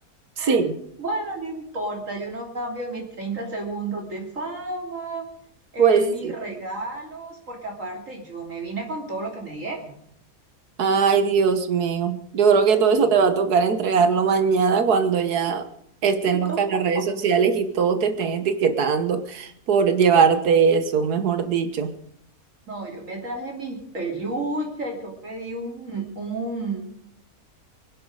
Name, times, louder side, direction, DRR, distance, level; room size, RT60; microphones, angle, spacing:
voice 1, 0.4-0.8 5.8-6.3 10.8-15.6 16.0-21.9, right 6 dB, 80° right, 10 dB, 1.8 m, -20 dB
voice 2, 1.0-5.3 5.7-10.0 12.9-13.1 15.5-15.6 16.2-17.0 22.7-26.8, right 2 dB, 55° right, 1 dB, 3.2 m, -32 dB
23.5 x 10.5 x 4.9 m, 0.67 s
omnidirectional pair, 1.6 m